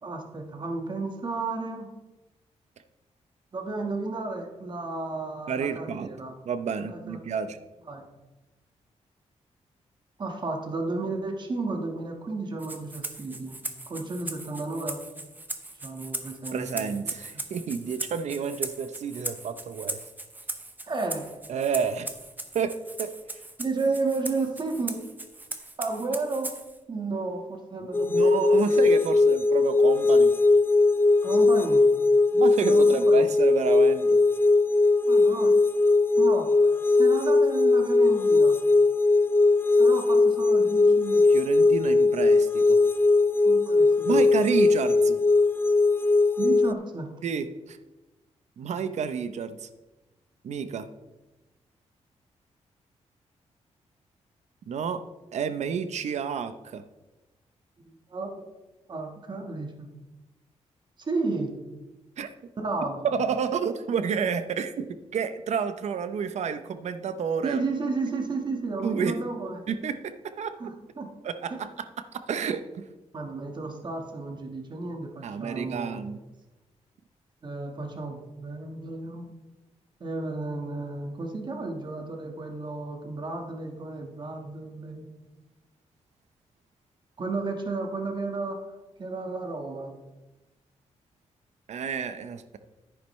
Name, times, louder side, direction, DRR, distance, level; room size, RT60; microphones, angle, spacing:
voice 1, 0.0-1.9 3.5-6.3 6.9-7.2 7.9-8.0 10.2-13.6 13.9-15.0 15.8-16.9 17.3-17.4 20.8-21.4 23.6-25.0 25.8-26.5 26.9-28.7 31.2-31.9 32.6-33.3 35.1-35.5 36.2-36.7 36.9-38.6 39.8-41.2 43.4-44.2 46.4-47.1 57.8-58.5 58.9-59.9 61.0-61.5 62.6-63.0 67.4-69.7 70.6-71.1 71.5-71.6 73.1-76.0 77.4-79.3 80.0-85.1 87.2-88.6 89.0-89.9, right 3 dB, 40° right, 3 dB, 1.5 m, -33 dB
voice 2, 5.5-6.1 6.5-7.6 16.5-20.0 21.5-22.1 22.5-22.7 23.0-23.4 28.0-30.3 32.3-34.2 41.3-42.8 44.1-45.2 47.2-47.8 48.6-49.7 50.4-50.9 54.7-55.0 55.3-56.8 62.2-62.3 63.0-67.6 68.8-69.2 69.7-70.5 71.2-71.7 72.0-72.9 75.2-76.2 91.7-92.6, right 6 dB, 70° right, 11 dB, 0.7 m, -30 dB
Rattle (instrument), 12.6-26.8, right 2 dB, 15° right, 0.8 m, -39 dB
sound 1, 27.9-46.7, left 3 dB, 20° left, 0.4 m, -20 dB
10.0 x 9.9 x 3.2 m, 1.1 s
wide cardioid pair, 120°, 12 cm